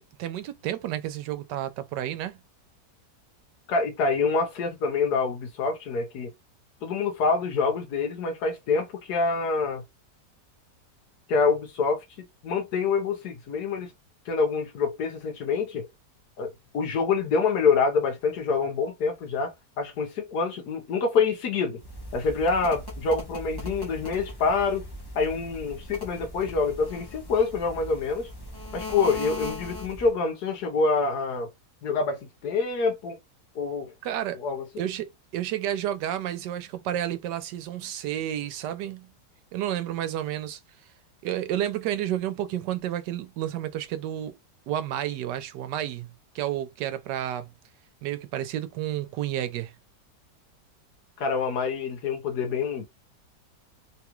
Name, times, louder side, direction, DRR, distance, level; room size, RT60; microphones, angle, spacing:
voice 1, 0.2-2.4 34.0-34.4 34.8-39.1 39.5-40.6 41.2-44.3 44.7-47.5 48.0-49.7, right 12 dB, 90° right, 1.2 m, -31 dB
voice 2, 3.7-6.3 6.8-9.8 11.3-13.9 14.3-15.9 16.4-21.8 22.1-24.8 25.1-28.3 28.7-31.5 31.8-33.2 33.5-33.9 34.3-34.9 51.2-52.8, left 4 dB, 70° left, 1.5 m, -26 dB
sound 1, 21.8-30.2, left 1 dB, 25° left, 0.5 m, -39 dB
3.5 x 2.4 x 3.0 m
omnidirectional pair, 1.8 m